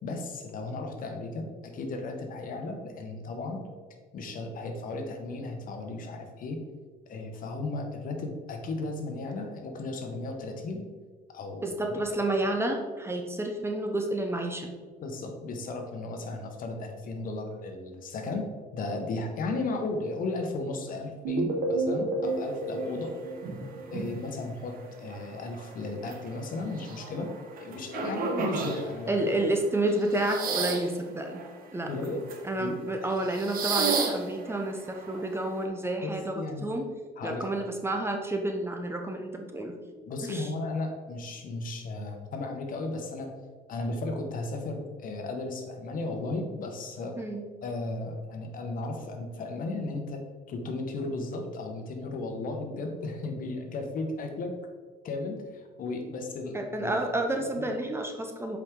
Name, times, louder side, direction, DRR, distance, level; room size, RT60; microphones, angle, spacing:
voice 1, 0.0-3.6 4.1-6.6 7.1-10.9 11.3-12.2 15.0-18.5 18.7-23.1 23.9-27.3 27.6-29.4 31.9-32.3 32.6-32.8 33.0-33.1 36.0-36.7 37.2-37.5 40.1-43.3 43.7-47.1 47.6-50.2 50.5-54.5 55.0-57.0 57.4-57.5, left 2 dB, 55° left, 4 dB, 1.2 m, -35 dB
voice 2, 11.6-14.7 29.1-31.4 31.7-31.9 32.4-36.9 37.2-39.8 40.2-40.5 47.2-47.5 56.5-58.6, right 1 dB, 15° right, 3 dB, 0.8 m, -30 dB
sound 1, 21.2-24.2, right 2 dB, 80° right, 1.4 m, -31 dB
sound 2, 22.8-22.9 23.4-24.3 24.6-29.2 29.8-30.9 31.3-32.4 33.0-35.6, right 5 dB, 60° right, 1.3 m, -34 dB
7.5 x 4.9 x 3.8 m, 1.5 s
cardioid pair, 110°, 17 cm